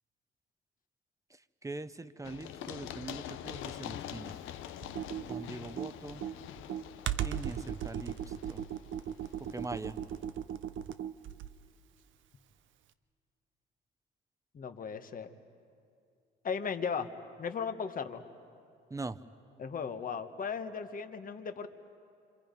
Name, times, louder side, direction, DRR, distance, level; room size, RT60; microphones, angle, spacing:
voice 1, 1.6-4.4 5.3-6.2 7.2-8.6 9.5-10.0 18.9-19.2, right 2 dB, 15° right, 12 dB, 0.8 m, -42 dB
Run, 2.2-9.9, left 11 dB, 90° left, 0.7 m, -45 dB
Computer keyboard, 4.8-11.7, right 10 dB, 75° right, 0.7 m, -37 dB
voice 2, 14.5-15.3 16.4-17.1 17.4-18.2 19.6-21.7, left 6 dB, 45° left, 8 dB, 1.2 m, -36 dB
28.0 x 25.5 x 5.2 m, 2.4 s
cardioid pair, 90°, 20 cm